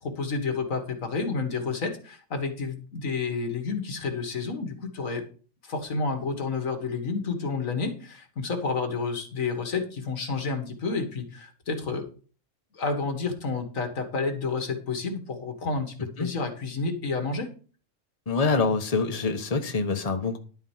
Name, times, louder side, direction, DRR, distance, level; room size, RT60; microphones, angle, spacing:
voice 1, 0.0-5.2 5.6-12.1 12.7-17.5, left 4 dB, 90° left, 5 dB, 2.2 m, -30 dB
voice 2, 18.3-20.4, left 4 dB, 30° left, 6 dB, 1.3 m, -25 dB
11.5 x 4.9 x 7.3 m, 0.39 s
omnidirectional pair, 1.4 m